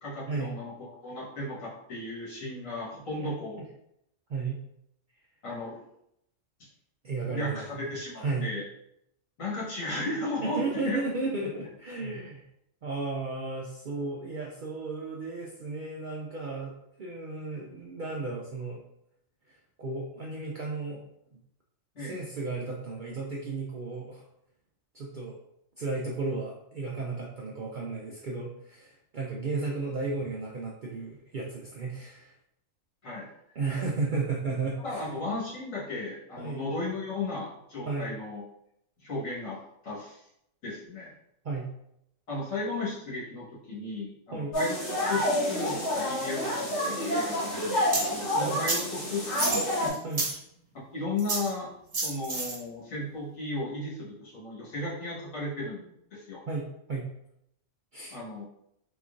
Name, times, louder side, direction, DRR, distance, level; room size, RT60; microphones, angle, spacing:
voice 1, 0.0-3.6 5.4-5.8 6.6-6.7 7.2-8.6 9.4-11.0 21.9-22.2 33.0-33.3 34.8-38.4 39.0-40.2 40.6-41.1 42.3-45.2 45.5-50.0 50.9-51.7 52.0-56.4 58.1-58.4, left 2 dB, 85° left, -7 dB, 1.8 m, -35 dB
voice 2, 7.0-7.9 8.2-8.5 10.4-12.5 12.8-18.8 19.5-21.0 22.0-24.2 24.9-25.4 25.8-32.3 33.6-35.1 36.4-36.7 37.9-38.1 41.4-41.7 44.3-44.5 48.4-48.6 50.0-50.3 56.5-57.1 57.9-58.2, right 3 dB, 65° right, -2 dB, 0.4 m, -34 dB
sound 1, 44.5-49.9, left 1 dB, 60° left, 1.9 m, -29 dB
sound 2, 47.9-48.1 48.7-48.8 49.3-50.4 51.2-51.5 51.9-52.6, right 2 dB, 45° right, 1.1 m, -29 dB
3.8 x 3.0 x 2.5 m, 0.77 s
omnidirectional pair, 1.3 m